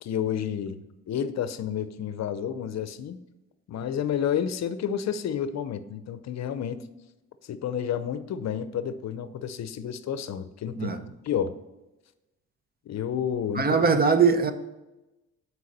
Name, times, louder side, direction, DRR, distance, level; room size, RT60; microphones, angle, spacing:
voice 1, 0.0-3.2 3.7-6.9 7.4-11.0 11.2-11.5 12.9-13.8, left 8 dB, 60° left, 0.6 m, -30 dB
voice 2, 13.5-14.5, right 5 dB, 30° right, 0.8 m, -21 dB
9.3 x 4.7 x 4.1 m
cardioid pair, 90°, 30 cm